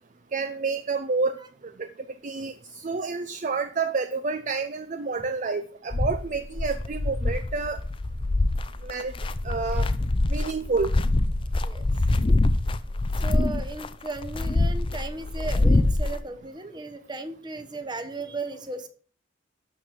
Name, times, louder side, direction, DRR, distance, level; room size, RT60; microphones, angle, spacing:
voice 1, 0.3-1.4 1.8-1.9 2.2-2.5 2.8-7.8 8.8-9.1 9.4-9.9 10.3-11.0, right 4 dB, 40° right, 9 dB, 0.5 m, -29 dB
sound 1, 5.9-16.2, left 2 dB, 25° left, 0.5 m, -24 dB
voice 2, 13.2-18.9, right 2 dB, 20° right, 8 dB, 1.0 m, -36 dB
12.5 x 4.6 x 6.5 m, 0.43 s
head